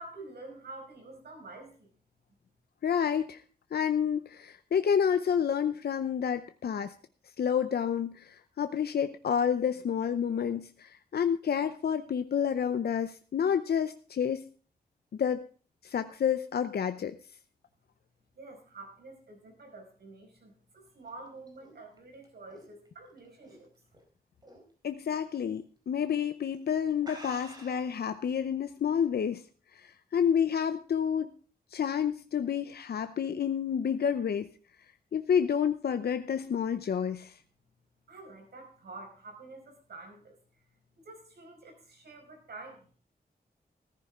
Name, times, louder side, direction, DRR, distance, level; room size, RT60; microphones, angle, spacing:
voice 1, 0.0-1.9 18.4-23.7 38.1-40.4 41.0-42.9, right 2 dB, 85° right, 2 dB, 5.5 m, -48 dB
voice 2, 2.8-3.4 3.7-6.9 7.4-14.4 15.1-15.4 15.8-17.1 24.8-29.4 29.7-31.3 31.7-34.5 35.1-37.4, left 8 dB, 80° left, 9 dB, 0.7 m, -29 dB
sound 1, 20.9-24.0 24.4-24.7 25.1-25.2 26.0-26.2 26.5-26.6 27.0-28.0, right 1 dB, 25° right, 4.0 m, -49 dB
14.5 x 14.5 x 3.7 m, 0.40 s
wide cardioid pair, 175°, 16 cm